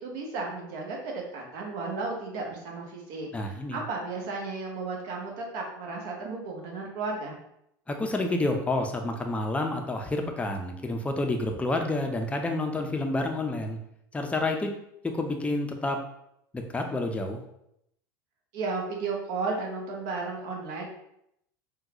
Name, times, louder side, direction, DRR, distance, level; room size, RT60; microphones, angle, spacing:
voice 1, 0.0-7.3 18.5-20.9, right 3 dB, 60° right, -1 dB, 1.0 m, -34 dB
voice 2, 3.3-3.8 7.9-13.8 14.1-14.7 15.0-16.0 16.5-17.4, left 2 dB, 10° left, 3 dB, 0.5 m, -29 dB
3.7 x 2.2 x 2.8 m, 0.77 s
hypercardioid pair, 85°, 11 cm